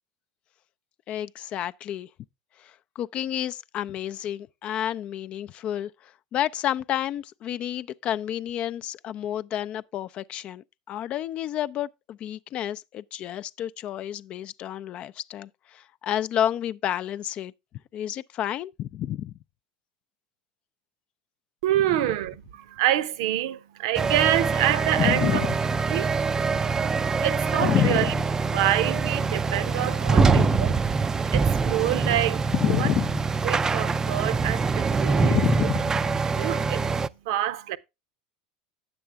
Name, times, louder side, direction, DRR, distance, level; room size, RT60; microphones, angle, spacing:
voice 1, 1.1-2.1 2.6-5.9 6.3-17.5 17.9-19.3 21.9-22.0 25.0-25.5 27.6-28.1 30.2-30.8 32.5-33.2 35.2-36.2, left 11 dB, 45° left, 0.4 m, -29 dB
voice 2, 21.6-25.5 25.9-26.2 27.2-28.1 28.5-30.7 31.3-32.9 33.4-35.4 36.4-36.9 37.3-37.8, right 13 dB, 70° right, 0.7 m, -26 dB
sound 1, 23.9-37.1, right 4 dB, 20° right, 0.4 m, -24 dB
9.3 x 7.7 x 3.4 m
hypercardioid pair, 90°, 3 cm